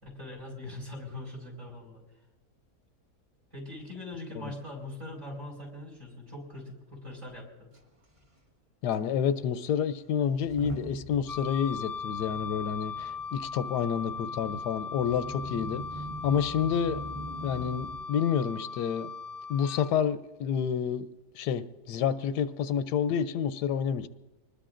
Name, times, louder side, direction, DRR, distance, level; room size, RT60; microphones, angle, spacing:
voice 1, 0.0-2.0 3.5-7.7, left 1 dB, 50° right, 1 dB, 4.9 m, -42 dB
Motor vehicle (road) / Engine starting / Accelerating revving vroom, 7.7-7.8 8.0-8.3 8.9-9.0 10.3-18.0, right 1 dB, 20° right, 1.2 m, -43 dB
voice 2, 8.8-15.8 16.2-17.0 17.4-19.1 19.5-21.1 21.3-24.1, left 8 dB, 85° left, 12 dB, 1.2 m, -29 dB
Wind instrument woodwind instrument, 11.3-19.9, left 5 dB, 30° left, 0.9 m, -38 dB
25.0 x 20.0 x 2.5 m, 1.1 s
omnidirectional pair, 1.7 m